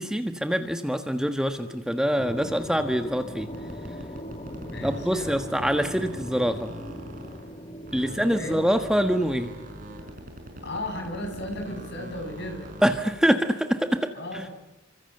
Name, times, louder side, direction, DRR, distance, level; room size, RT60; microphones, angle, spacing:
voice 1, 0.0-3.5 4.8-6.7 7.9-9.5 12.8-14.1, equal, 5° right, 7 dB, 1.4 m, -25 dB
sound 1, 2.1-12.0, equal, 30° left, 2.3 m, -41 dB
sound 2, 3.4-7.6 7.9-13.3, equal, 40° right, 5.2 m, -42 dB
voice 2, 4.7-6.3 8.0-8.6 10.6-12.7 14.1-14.5, left 1 dB, 55° left, 4 dB, 7.7 m, -36 dB
29.0 x 25.5 x 7.9 m, 0.97 s
head